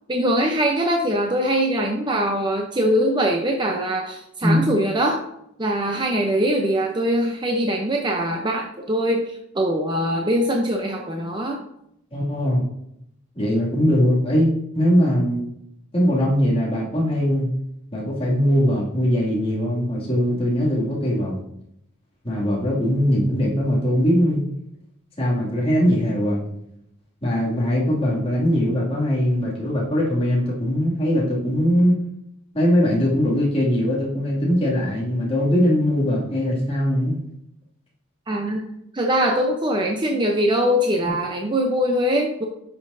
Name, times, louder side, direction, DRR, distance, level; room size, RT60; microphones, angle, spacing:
voice 1, 0.1-5.2 5.6-11.6 38.3-38.6 38.9-42.4, equal, 20° right, 1 dB, 0.7 m, -22 dB
voice 2, 12.1-12.6 13.4-15.4 15.9-17.5 17.9-21.3 22.2-24.5 25.2-26.4 27.2-32.0 32.5-37.2, equal, 25° left, -5 dB, 2.4 m, -21 dB
10.0 x 6.1 x 2.7 m, 0.76 s
head